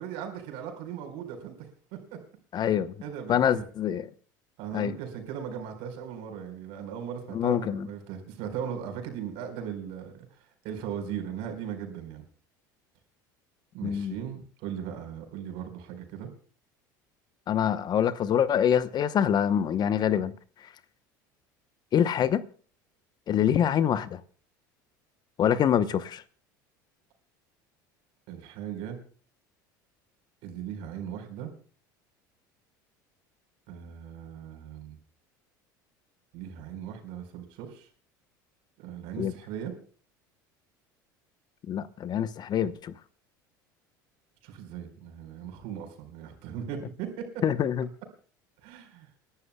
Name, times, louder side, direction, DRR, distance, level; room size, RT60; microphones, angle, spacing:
voice 1, 0.0-1.6 1.9-2.0 2.6-2.7 3.0-3.6 4.6-10.3 10.6-12.2 13.7-16.3 28.3-29.0 30.4-31.5 33.7-35.0 36.3-37.9 38.8-39.7 44.4-47.4 48.6-49.1, right 8 dB, 65° right, 4.4 m, -38 dB
voice 2, 2.5-2.9 3.3-4.1 4.7-4.9 7.3-7.9 13.8-14.2 17.5-20.3 21.9-22.4 23.3-24.2 25.4-26.2 39.2-39.3 41.7-42.9 47.4-47.9, left 9 dB, 45° left, 0.8 m, -25 dB
30.0 x 11.5 x 2.3 m
hypercardioid pair, 80°, 10 cm